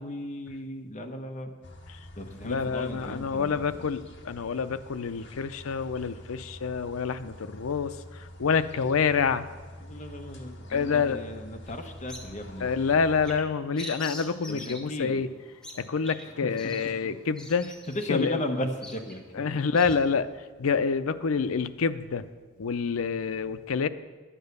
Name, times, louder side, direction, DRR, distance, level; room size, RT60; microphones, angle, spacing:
voice 1, 0.0-1.5 2.2-3.9 9.8-13.0 14.5-15.2 17.9-19.2, left 1 dB, 35° left, 4 dB, 1.1 m, -35 dB
sound 1, 1.6-13.4, left 1 dB, 60° left, 1.7 m, -46 dB
voice 2, 2.4-9.5 10.7-11.2 12.6-15.3 15.7-17.7 18.1-18.4 19.3-20.3 20.6-22.3 22.6-23.9, left 5 dB, 85° left, 12 dB, 0.6 m, -27 dB
Bird vocalization bird call bird song, 11.6-20.0, equal, 5° left, 1.4 m, -46 dB
10.5 x 9.0 x 6.7 m, 1.4 s
head